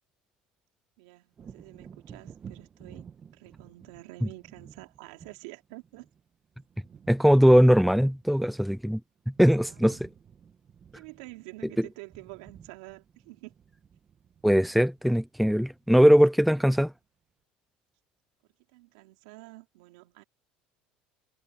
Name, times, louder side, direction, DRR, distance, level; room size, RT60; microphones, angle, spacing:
voice 1, 1.0-3.1 3.3-6.1 9.5-10.0 10.9-13.5 18.7-20.2, right 22 dB, 90° right, 3.5 m, -48 dB
Wind / Thunder, 1.3-8.9 9.2-16.4 16.8-17.0, right 7 dB, 25° right, 1.7 m, -52 dB
voice 2, 7.1-9.0 9.4-10.1 14.4-16.9, equal, ahead, 0.5 m, -20 dB
cardioid pair, 155°, 3 cm